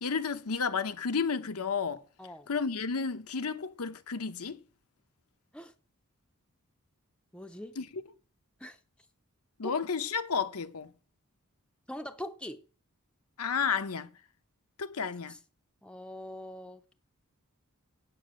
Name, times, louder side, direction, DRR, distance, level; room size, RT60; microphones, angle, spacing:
voice 1, 0.0-2.0 2.5-4.6 7.8-8.0 9.6-10.9 13.4-14.1 14.8-15.4, left 5 dB, 80° left, 0.9 m, -32 dB
voice 2, 7.3-7.8 8.6-8.8 11.9-12.6 15.8-16.9, left 1 dB, 5° left, 0.6 m, -42 dB
8.4 x 8.4 x 6.3 m
head